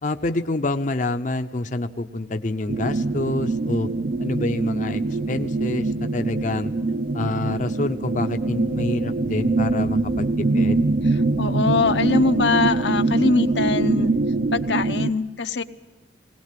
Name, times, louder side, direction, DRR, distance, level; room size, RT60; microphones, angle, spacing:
voice 1, 0.0-3.9 4.2-5.0 5.3-6.7 7.1-10.8, left 2 dB, 45° left, 8 dB, 0.7 m, -27 dB
sound 1, 2.7-15.1, right 3 dB, 50° right, 0.6 m, -23 dB
voice 2, 11.4-14.1 14.5-15.6, left 4 dB, 75° left, 8 dB, 0.9 m, -22 dB
21.0 x 18.5 x 7.5 m, 1.1 s
head